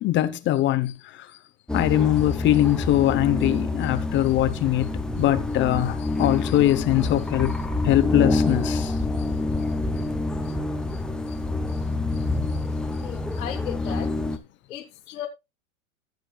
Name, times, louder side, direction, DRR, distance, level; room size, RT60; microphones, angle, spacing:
voice 1, 0.0-0.9 1.7-4.9 5.2-7.5 7.8-8.9, left 14 dB, 30° left, 0.9 m, -22 dB
sound 1, 1.7-14.4, left 2 dB, ahead, 0.5 m, -27 dB
voice 2, 13.0-14.1 14.7-15.3, left 10 dB, 85° left, 1.5 m, -35 dB
15.5 x 7.8 x 2.4 m
hypercardioid pair, 130°, 41 cm